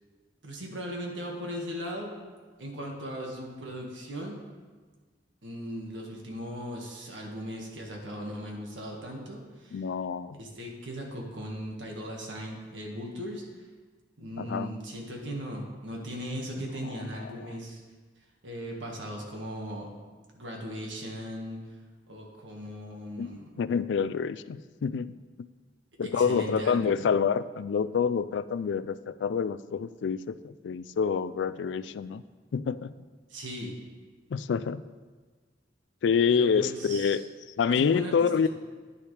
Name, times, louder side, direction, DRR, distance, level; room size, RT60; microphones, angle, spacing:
voice 1, 0.4-2.1 2.6-4.4 5.4-9.8 10.4-13.4 14.2-17.8 18.4-19.9 20.3-21.6 22.1-23.5 26.0-26.9 33.3-33.8 36.3-37.2 37.7-38.5, equal, 80° right, 0 dB, 1.7 m, -38 dB
voice 2, 9.7-10.4 14.4-14.7 16.8-17.0 23.2-23.3 23.6-25.1 26.0-32.2 32.5-32.9 34.3-34.8 36.0-37.2 37.6-38.5, left 6 dB, 70° left, 14 dB, 0.3 m, -27 dB
10.0 x 10.0 x 3.3 m, 1.4 s
head